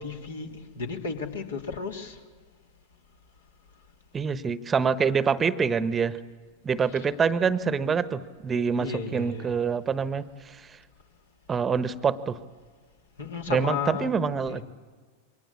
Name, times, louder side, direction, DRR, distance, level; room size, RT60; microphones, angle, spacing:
voice 1, 0.0-2.2 6.9-7.0 8.8-9.5 13.2-14.1 14.5-14.6, left 5 dB, 65° left, 2 dB, 3.2 m, -33 dB
voice 2, 4.1-6.2 6.6-10.6 11.5-12.4 13.5-14.6, right 6 dB, 20° right, 14 dB, 1.1 m, -26 dB
28.0 x 24.0 x 8.5 m, 1.5 s
figure-of-eight pair, 90°, 0 cm